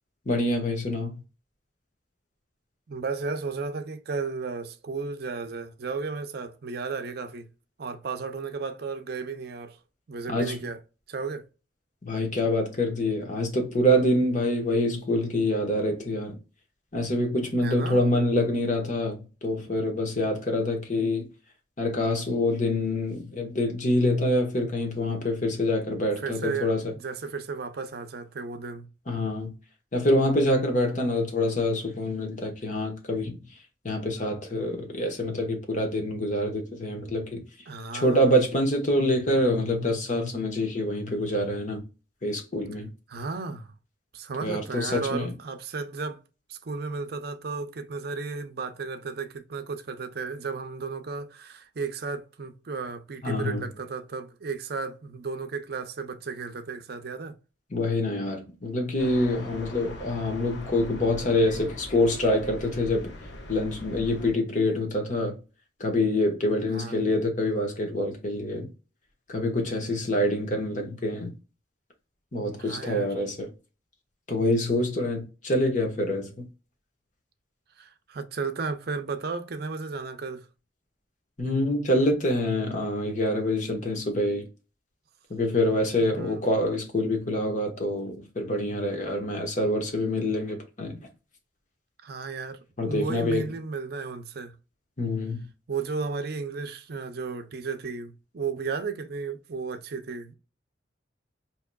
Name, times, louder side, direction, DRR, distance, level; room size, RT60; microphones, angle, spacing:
voice 1, 0.3-1.1 10.3-10.6 12.0-16.4 16.9-21.3 21.8-26.9 29.1-29.5 29.9-33.4 33.8-37.4 37.9-41.8 42.2-42.9 44.4-45.3 53.2-53.6 57.7-63.1 63.5-65.4 65.8-68.7 69.3-71.3 72.3-73.5 74.3-76.5 81.4-84.5 85.3-91.0 92.8-93.5 95.0-95.4, left 1 dB, 45° left, 1.2 m, -26 dB
voice 2, 2.9-7.5 7.8-9.8 10.1-10.8 11.1-11.5 17.6-18.0 26.2-28.9 37.7-38.3 43.1-43.7 44.1-46.2 46.5-57.4 66.7-67.0 72.6-73.1 77.8-80.5 86.1-86.5 92.0-92.6 92.8-94.5 95.7-100.3, right 4 dB, 60° right, 0.5 m, -34 dB
sound 1, 59.0-64.3, left 1 dB, 85° left, 1.0 m, -41 dB
4.5 x 2.9 x 2.2 m
head